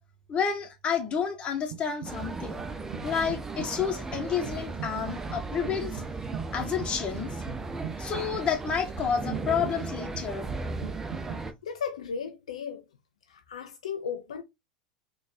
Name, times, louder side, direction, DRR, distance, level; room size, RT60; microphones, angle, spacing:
voice 1, 0.3-2.6 3.0-6.0 6.5-7.4 8.0-10.5, left 7 dB, 30° left, 1.1 m, -30 dB
sound 1, 1.7-2.3 2.6-11.4, right 7 dB, 70° right, 0.5 m, -42 dB
sound 2, 2.0-11.5, right 3 dB, 15° right, 0.5 m, -36 dB
voice 2, 11.6-12.8 13.3-14.4, left 6 dB, 75° left, 0.5 m, -35 dB
3.9 x 2.4 x 2.5 m
figure-of-eight pair, 80°, 3 cm